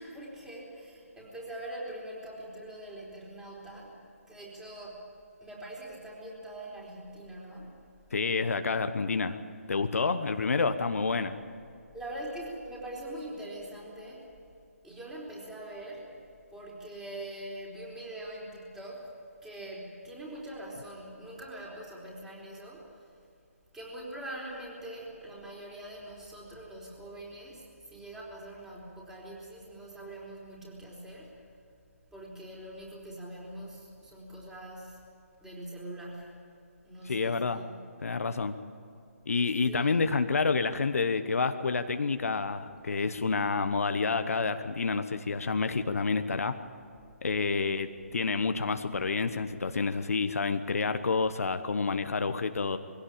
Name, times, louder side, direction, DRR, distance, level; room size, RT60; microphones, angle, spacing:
voice 1, 0.0-4.0 4.3-5.1 5.4-7.8 11.9-14.3 14.8-16.2 16.5-19.1 19.4-23.1 23.7-31.3 32.1-35.0 35.4-36.5 36.8-37.8 39.7-39.9, right 1 dB, 5° right, -4 dB, 4.2 m, -43 dB
voice 2, 8.1-9.4 9.7-11.4 37.1-37.6 38.0-38.5 39.3-46.6 47.2-52.8, left 4 dB, 70° left, 9 dB, 1.1 m, -29 dB
22.0 x 17.0 x 8.8 m, 2.5 s
figure-of-eight pair, 150°, 8 cm